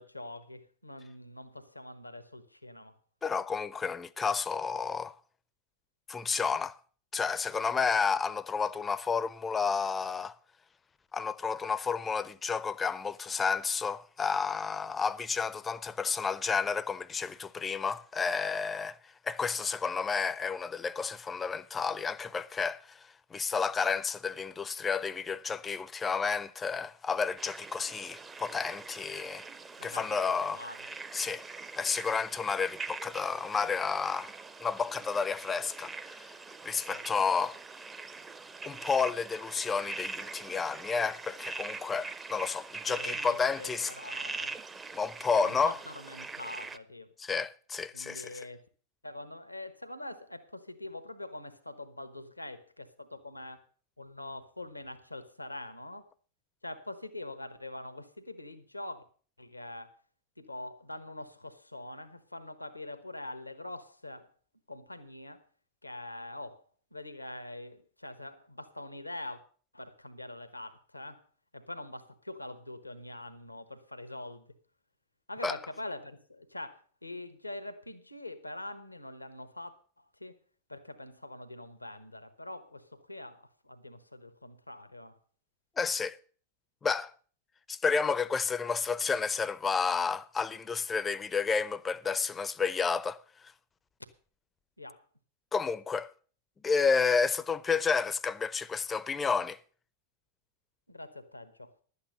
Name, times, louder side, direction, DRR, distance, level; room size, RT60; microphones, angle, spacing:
voice 1, 0.0-2.9 29.8-30.8 36.9-37.0 42.9-44.5 45.3-47.1 47.9-48.6 49.0-53.6 54.0-56.1 56.6-59.0 59.4-59.9 60.4-64.3 64.7-65.4 65.8-66.6 66.9-69.4 69.7-71.2 71.5-74.5 75.3-80.4 80.7-85.2 94.8-95.0 100.9-101.7, left 2 dB, 85° left, 1.1 m, -44 dB
voice 2, 3.2-5.1 6.1-6.8 7.1-10.4 11.1-29.4 29.8-30.6 31.1-31.4 31.8-34.3 34.6-36.4 36.6-37.6 38.6-43.9 44.9-45.8 47.2-48.4 75.4-75.6 85.8-86.2 86.8-87.1 87.7-93.2 95.5-96.1 96.6-99.6, left 5 dB, 15° left, 0.6 m, -31 dB
sound 1, 27.4-46.8, right 4 dB, 15° right, 0.7 m, -43 dB
12.0 x 8.6 x 6.5 m
figure-of-eight pair, 90°, 0 cm